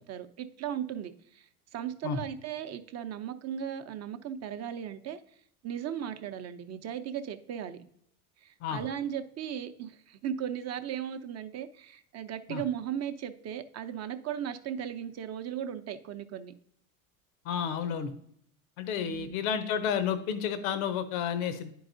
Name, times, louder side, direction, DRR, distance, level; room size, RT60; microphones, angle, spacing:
voice 1, 0.0-1.5 1.7-5.2 5.6-7.8 8.4-16.5 19.0-19.5, right 9 dB, 35° right, 9 dB, 0.6 m, -37 dB
voice 2, 17.4-18.1 18.8-21.7, left 8 dB, 70° left, 11 dB, 0.8 m, -31 dB
10.0 x 4.7 x 2.6 m, 0.69 s
hypercardioid pair, 85°, 44 cm